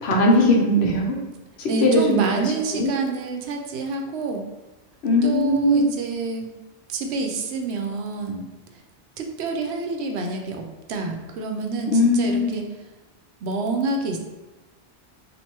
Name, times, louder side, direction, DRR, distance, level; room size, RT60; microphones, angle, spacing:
voice 1, 0.0-1.2 1.6-2.4 2.7-2.9 5.0-5.9 11.9-12.6, left 1 dB, 70° left, 0 dB, 0.9 m, -19 dB
voice 2, 1.7-4.4 5.2-6.5 6.9-8.5 9.2-12.6 13.4-14.2, right 3 dB, 75° right, 3 dB, 0.8 m, -28 dB
4.5 x 2.5 x 2.9 m, 1.1 s
omnidirectional pair, 1.2 m